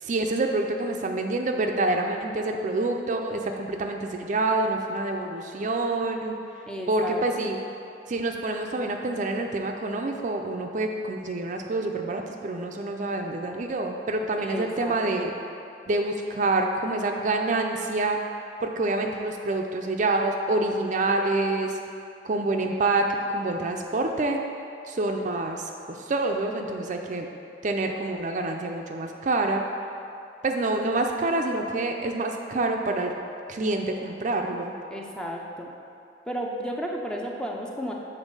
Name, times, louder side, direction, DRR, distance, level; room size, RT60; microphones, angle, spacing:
voice 1, 0.0-6.4 6.9-7.6 8.1-15.3 15.9-18.2 18.6-21.8 22.2-24.4 24.9-27.3 27.6-29.6 30.4-33.1 33.5-34.7, right 2 dB, 45° right, 3 dB, 0.4 m, -27 dB
voice 2, 6.7-7.5 14.4-15.3 34.9-35.7 36.3-37.9, equal, 5° left, -1 dB, 0.5 m, -33 dB
7.1 x 4.0 x 5.4 m, 2.6 s
head